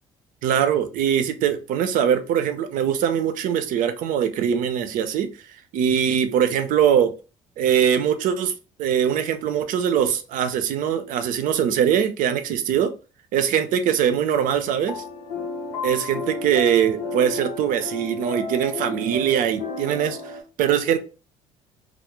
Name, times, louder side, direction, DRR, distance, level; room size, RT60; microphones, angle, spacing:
voice 1, 0.4-5.3 5.7-7.1 7.6-8.5 8.8-12.9 13.3-15.0 15.8-20.2 20.6-21.0, right 9 dB, 65° right, 10 dB, 0.5 m, -22 dB
sound 1, 14.8-20.4, left 3 dB, 75° left, 0.7 m, -33 dB
2.3 x 2.0 x 2.9 m, 0.34 s
supercardioid pair, 75°, 15 cm